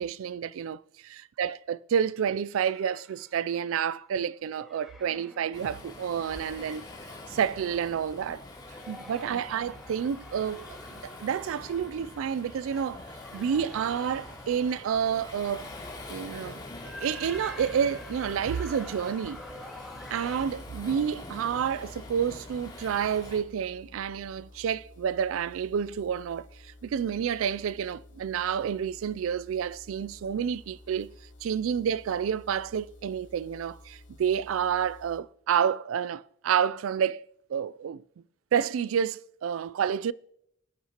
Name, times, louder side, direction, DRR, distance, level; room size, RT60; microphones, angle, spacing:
voice 1, 0.0-6.8 7.3-8.4 8.9-10.8 11.0-13.0 13.3-15.7 16.1-16.6 17.0-19.4 20.1-31.1 31.4-38.0 38.5-40.1, right 8 dB, 90° right, 0.3 m, -29 dB
sound 1, 2.5-3.9 4.4-6.8 7.4-7.7 8.4-20.5, left 1 dB, ahead, 1.2 m, -48 dB
Waves surf, 5.5-23.4, left 2 dB, 20° left, 2.8 m, -45 dB
sound 2, 15.5-35.2, left 1 dB, 60° left, 1.3 m, -52 dB
25.0 x 8.5 x 2.9 m
head